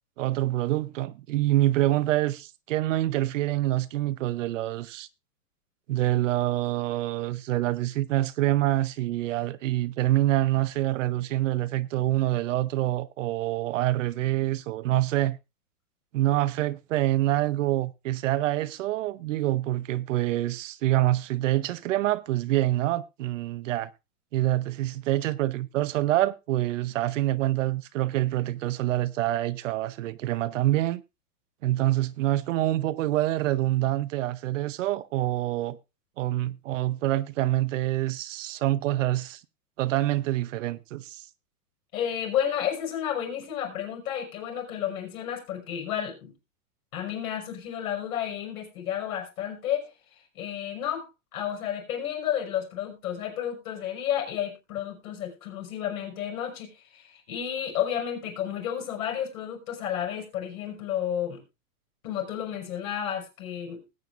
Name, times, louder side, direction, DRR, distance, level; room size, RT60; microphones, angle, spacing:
voice 1, 0.2-5.1 5.9-15.4 16.1-23.9 24.3-31.0 31.6-35.8 36.2-39.4 39.8-41.2, right 15 dB, 55° right, 0.8 m, -26 dB
voice 2, 41.9-46.3 46.9-49.9 50.3-61.4 62.0-63.8, left 10 dB, 65° left, 5.8 m, -31 dB
20.0 x 9.0 x 2.5 m
supercardioid pair, 155°, 46 cm